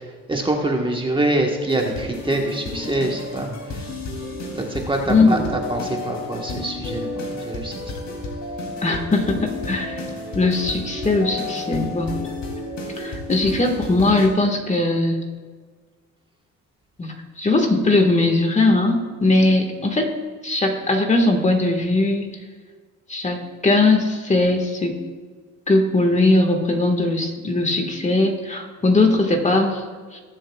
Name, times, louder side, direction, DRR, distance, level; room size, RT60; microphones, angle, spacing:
voice 1, 0.3-3.5 4.6-5.4 5.7-7.1 7.3-7.8, right 1 dB, 15° right, 1 dB, 1.3 m, -24 dB
sound 1, 1.7-14.3, left 2 dB, 65° left, 3.0 m, -31 dB
voice 2, 5.1-5.4 8.8-10.0 10.3-12.2 13.0-15.2 17.0-20.1 20.4-22.3 23.1-25.0 25.7-29.8 30.1-30.2, left 2 dB, 25° left, 4 dB, 1.7 m, -19 dB
21.5 x 7.6 x 2.4 m, 1.5 s
cardioid pair, 90°, 30 cm